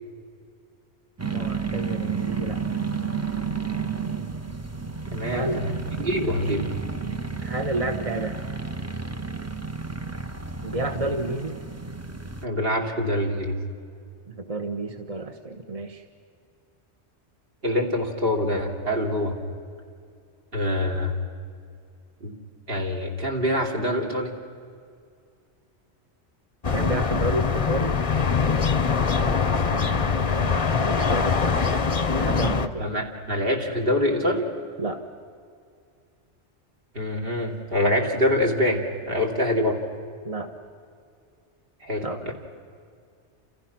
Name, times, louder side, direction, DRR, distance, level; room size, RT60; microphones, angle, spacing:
sound 1, 1.2-12.5, right 5 dB, 15° right, 0.7 m, -31 dB
voice 1, 1.3-2.6 5.2-5.6 7.4-8.3 10.6-11.6 14.3-16.0 26.7-27.9 29.7-31.7 32.1-32.9 34.8-35.0 40.2-40.5 42.0-42.2, right 2 dB, 35° right, 5 dB, 1.2 m, -30 dB
voice 2, 5.1-5.7 6.0-6.7 12.4-13.6 17.6-19.4 20.5-21.2 22.2-22.3 22.7-24.4 32.8-34.5 36.9-39.8 41.8-42.3, left 1 dB, 55° right, 3 dB, 3.2 m, -25 dB
sound 2, 26.6-32.7, left 5 dB, 35° left, 0.8 m, -23 dB
29.0 x 28.5 x 6.0 m, 2.3 s
omnidirectional pair, 1.2 m